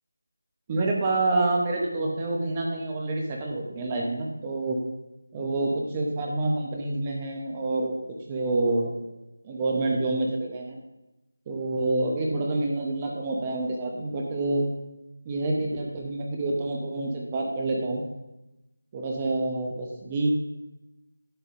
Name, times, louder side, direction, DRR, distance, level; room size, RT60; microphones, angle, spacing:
voice 1, 0.7-4.8 5.3-8.0 8.3-8.9 9.4-10.8 11.5-14.7 15.2-18.0 18.9-20.3, right 2 dB, 15° right, 0 dB, 0.9 m, -27 dB
11.0 x 7.8 x 2.6 m, 0.96 s
figure-of-eight pair, 175°, 0 cm